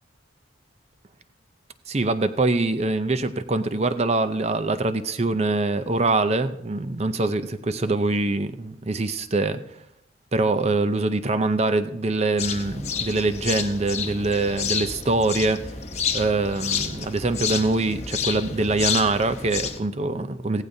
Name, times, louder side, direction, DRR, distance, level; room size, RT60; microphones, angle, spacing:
voice 1, 1.9-9.6 10.3-15.6 16.1-20.6, right 2 dB, 35° right, 11 dB, 0.6 m, -24 dB
sound 1, 12.4-19.8, left 6 dB, 35° left, 0.9 m, -30 dB
16.5 x 15.5 x 2.7 m, 0.81 s
head